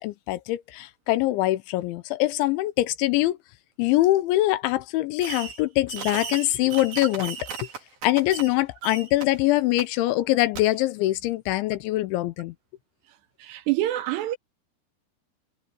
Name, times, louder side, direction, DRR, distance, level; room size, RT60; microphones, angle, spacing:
voice 1, 0.0-3.4 3.8-7.4 8.0-12.5, left 17 dB, 80° left, 3.2 m, -23 dB
Fireworks, 5.2-5.6 5.9-8.5 8.8-9.3 9.8-9.9 10.5-10.6, right 6 dB, 50° right, 5.1 m, -36 dB
voice 2, 13.4-14.4, right 15 dB, 80° right, 2.7 m, -26 dB
omnidirectional pair, 5.4 m